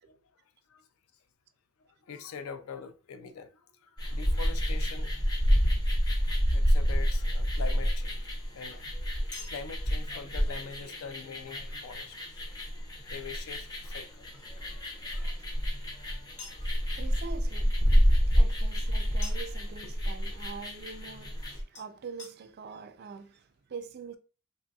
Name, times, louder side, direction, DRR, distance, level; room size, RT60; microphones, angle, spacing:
voice 1, 1.8-5.1 6.5-8.3 8.5-8.9 9.4-12.2 13.1-14.4 15.1-15.6 16.2-16.3, left 5 dB, 70° left, 0.4 m, -44 dB
sound 1, 4.0-21.6, equal, 20° left, 0.5 m, -28 dB
Chink clink, 9.3-12.5 14.1-15.7 16.4-16.7 19.2-19.6 21.8-21.9 22.2-22.3 23.0-23.1 23.2-23.3, left 4 dB, 35° left, 0.9 m, -50 dB
voice 2, 16.2-24.2, right 5 dB, 45° right, 0.3 m, -45 dB
3.2 x 2.7 x 2.2 m
head